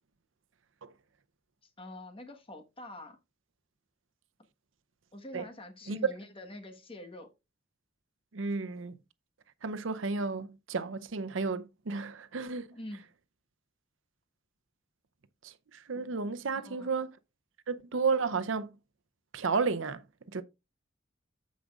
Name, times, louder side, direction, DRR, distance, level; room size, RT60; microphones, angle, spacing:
voice 1, 1.6-3.2 5.1-7.3 12.7-13.1 16.5-16.9, left 1 dB, 30° left, 1.3 m, -46 dB
voice 2, 8.3-9.0 9.6-12.7 15.4-17.2 17.7-18.7 19.3-20.0 20.3-20.4, right 4 dB, 80° right, 0.6 m, -32 dB
14.0 x 5.1 x 2.4 m
head